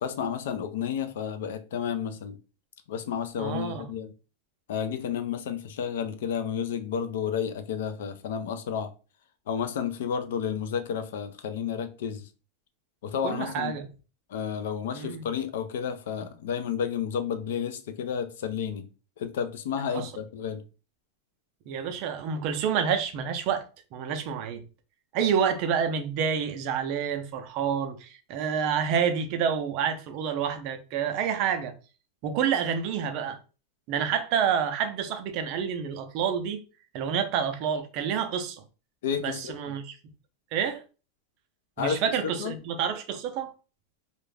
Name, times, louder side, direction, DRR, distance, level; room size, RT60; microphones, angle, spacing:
voice 1, 0.0-2.4 2.9-4.1 4.7-8.9 9.5-12.3 13.0-13.7 14.3-18.9 19.2-20.6 39.0-39.7 41.8-42.5, left 7 dB, 75° left, 0.4 m, -31 dB
voice 2, 3.4-3.8 13.2-13.9 14.9-15.3 19.9-20.1 21.7-23.6 23.9-24.6 25.1-31.7 32.2-33.4 33.9-36.6 36.9-38.6 39.2-40.0 40.5-40.8 41.8-43.5, right 7 dB, 40° right, 0.4 m, -28 dB
2.4 x 2.1 x 3.2 m
supercardioid pair, 170°, 0 cm